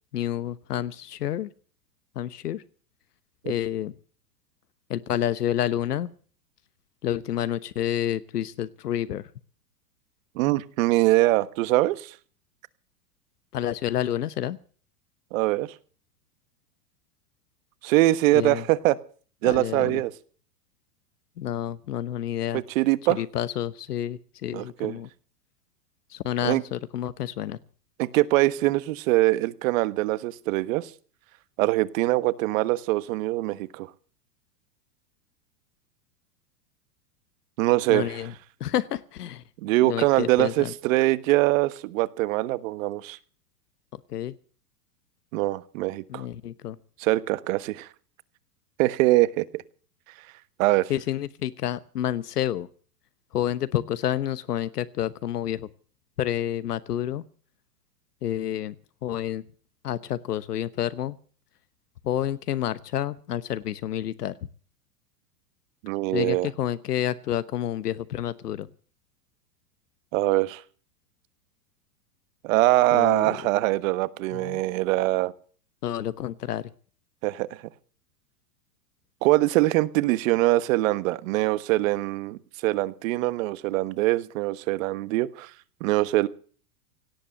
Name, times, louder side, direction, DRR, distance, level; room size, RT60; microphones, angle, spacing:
voice 1, 0.1-1.5 2.2-2.6 3.4-3.9 4.9-6.1 7.0-9.2 13.5-14.6 18.3-18.6 19.4-20.0 21.4-22.6 23.1-25.1 26.1-27.6 37.9-38.3 38.6-39.4 39.9-40.7 44.1-44.3 46.1-46.8 50.9-52.7 53.3-55.7 56.2-57.2 58.2-58.7 59.0-59.4 59.8-61.2 62.0-64.3 66.1-68.7 72.9-73.4 74.3-74.6 75.8-76.6, left 11 dB, 90° left, 15 dB, 1.1 m, -29 dB
voice 2, 10.4-12.1 15.3-15.7 17.8-19.0 19.4-20.1 22.5-23.2 24.5-25.0 26.4-26.6 28.0-30.9 31.6-33.9 37.6-38.2 39.6-43.2 45.3-46.3 47.0-47.9 48.8-49.6 50.6-50.9 65.8-66.5 70.1-70.6 72.4-75.3 77.2-77.6 79.2-85.5 85.8-86.3, right 18 dB, 60° right, 16 dB, 1.4 m, -23 dB
18.0 x 8.4 x 9.0 m, 0.43 s
hypercardioid pair, 120°, 46 cm